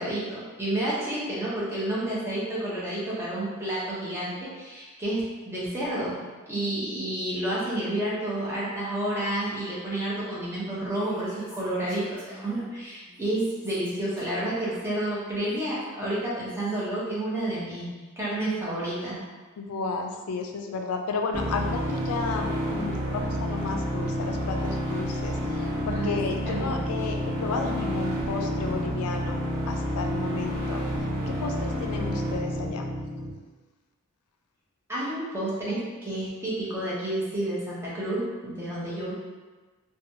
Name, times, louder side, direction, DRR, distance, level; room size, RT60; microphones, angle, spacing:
voice 1, 0.0-6.2 6.5-17.9 18.2-19.2 25.8-26.2 26.4-26.7 34.9-39.1, right 1 dB, 10° right, -8 dB, 0.7 m, -30 dB
Female speech woman speaking, 10.8-12.7 13.0-16.8, equal, 5° left, 1.5 m, -47 dB
voice 2, 19.6-30.8 31.3-32.9, left 4 dB, 85° left, 4 dB, 0.3 m, -33 dB
sound 1, 21.3-33.3, equal, 85° right, 0.7 m, -29 dB
3.0 x 2.2 x 2.6 m, 1.3 s
head